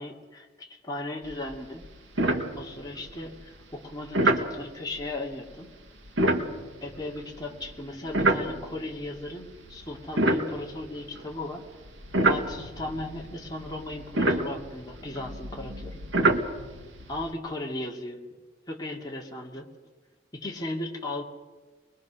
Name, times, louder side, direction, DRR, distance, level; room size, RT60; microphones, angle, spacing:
voice 1, 0.0-1.8 2.6-5.7 6.8-11.7 12.2-16.0 17.1-18.2 18.7-19.7 20.3-21.2, left 2 dB, 20° left, -1 dB, 2.4 m, -36 dB
sound 1, 1.3-1.5 1.8-1.9 2.2-3.0 4.1-4.5 6.1-8.9 9.5-11.3 11.9-17.3, right 2 dB, 85° right, 1.9 m, -27 dB
24.5 x 21.5 x 6.3 m, 1.4 s
head